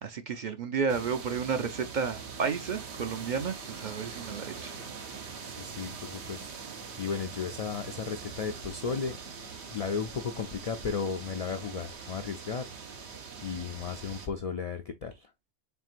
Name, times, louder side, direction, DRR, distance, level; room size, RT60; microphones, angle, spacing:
voice 1, 0.0-4.7, right 6 dB, 55° right, 0.6 m, -32 dB
sound 1, 0.9-14.3, right 5 dB, 85° right, 1.1 m, -43 dB
voice 2, 5.5-6.4 7.0-12.7 13.4-15.3, left 6 dB, 60° left, 0.4 m, -35 dB
4.4 x 3.6 x 2.4 m
omnidirectional pair, 1.1 m